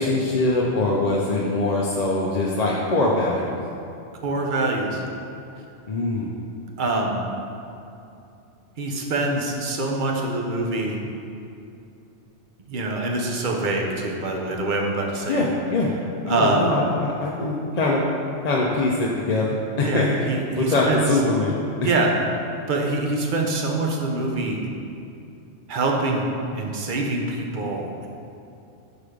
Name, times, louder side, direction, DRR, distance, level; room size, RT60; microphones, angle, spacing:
voice 1, 0.0-3.5 5.9-6.3 15.3-15.9 16.2-18.0 18.4-20.2 20.6-21.5 21.8-21.9, left 2 dB, 45° left, -3 dB, 0.6 m, -22 dB
voice 2, 4.2-5.0 6.8-7.2 8.8-11.0 12.6-15.5 16.3-16.7 19.8-21.0 21.8-22.1 22.7-24.6 25.7-26.2 26.5-28.1, right 2 dB, 50° right, 0 dB, 0.9 m, -25 dB
6.6 x 4.7 x 5.0 m, 2.7 s
omnidirectional pair, 1.2 m